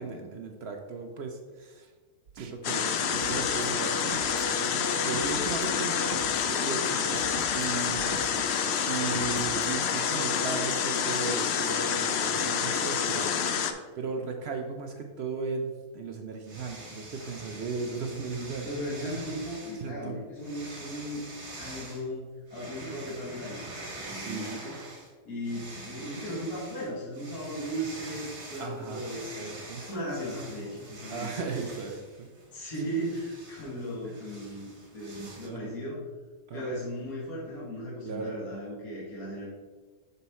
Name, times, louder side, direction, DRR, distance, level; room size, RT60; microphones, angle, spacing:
voice 1, 0.0-1.9 2.3-5.9 6.4-7.2 7.5-8.6 8.9-13.3 14.0-18.7 19.7-20.2 24.1-24.5 28.6-29.1 29.3-29.8 31.1-32.3 35.4-35.7 36.5-36.7 38.0-38.4, right 4 dB, 65° right, 4 dB, 0.6 m, -36 dB
sound 1, 2.3-2.5 2.9-4.5 5.1-6.3 6.6-6.7 7.1-8.5 8.9-9.7, right 5 dB, 80° right, 1.2 m, -42 dB
sound 2, 2.6-13.7, left 7 dB, 85° left, 0.5 m, -28 dB
voice 2, 5.4-6.0 13.2-13.7 18.6-21.3 21.6-23.6 23.9-24.8 25.3-31.5 32.5-36.0 36.5-39.5, equal, 65° left, -6 dB, 2.2 m, -37 dB
sound 3, 16.5-19.8 20.4-22.0 22.5-25.1 25.4-35.5, right 2 dB, 45° right, 1.7 m, -45 dB
6.8 x 4.5 x 4.1 m, 1.4 s
omnidirectional pair, 1.7 m